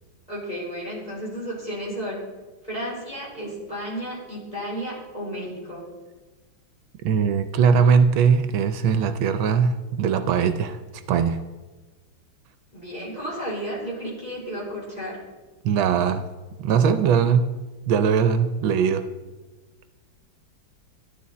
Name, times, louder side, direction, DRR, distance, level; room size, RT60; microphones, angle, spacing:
voice 1, 0.3-2.2 2.6-5.8 12.7-15.2, equal, 20° left, -6 dB, 4.7 m, -33 dB
voice 2, 7.0-10.8 11.1-11.4 15.6-16.3 16.6-17.5 17.9-19.0, right 6 dB, 80° right, 10 dB, 1.4 m, -20 dB
14.0 x 11.0 x 4.2 m, 1.2 s
omnidirectional pair, 2.2 m